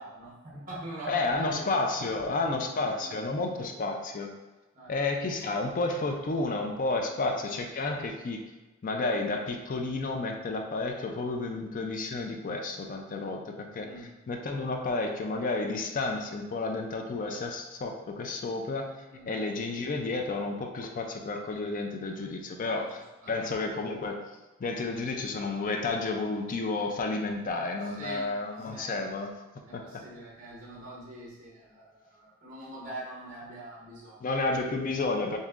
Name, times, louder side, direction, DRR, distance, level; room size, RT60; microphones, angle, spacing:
voice 1, 0.0-1.7 2.1-2.2 2.5-3.5 4.7-4.9 7.1-7.3 13.8-14.1 19.1-19.4 22.6-22.8 23.2-23.4 27.8-28.3 28.6-28.9 29.6-34.3, right 1 dB, 40° right, -4 dB, 0.9 m, -44 dB
voice 2, 1.1-4.3 4.9-8.4 8.8-13.9 14.3-18.9 19.3-23.0 23.3-24.2 24.6-29.3 29.7-30.0 34.2-35.4, left 3 dB, 40° left, 4 dB, 0.4 m, -31 dB
7.0 x 2.7 x 2.4 m, 1.1 s
head